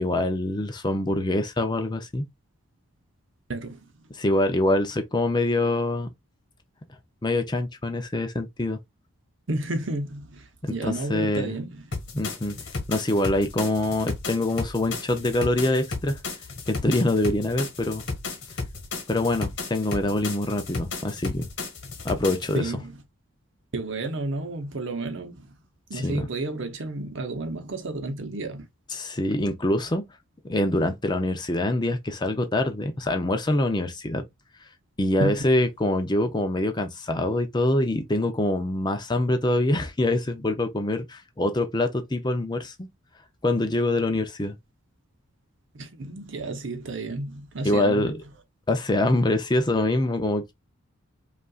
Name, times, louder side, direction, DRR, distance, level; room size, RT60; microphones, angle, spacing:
voice 1, 0.0-2.2 4.1-6.1 7.2-8.8 10.6-11.5 12.1-12.6 12.9-16.2 16.7-18.0 19.1-21.5 22.0-22.6 25.9-26.3 28.9-30.0 30.4-34.2 35.0-42.9 43.4-44.6 47.6-48.1 48.7-50.5, left 1 dB, 20° left, 0.5 m, -25 dB
voice 2, 3.5-3.9 9.5-11.8 22.5-22.9 23.7-25.6 25.9-28.7 35.2-35.4 45.7-48.2, right 2 dB, 60° right, 0.8 m, -31 dB
sound 1, 11.9-22.6, left 3 dB, 55° left, 1.3 m, -34 dB
5.3 x 2.5 x 2.4 m
head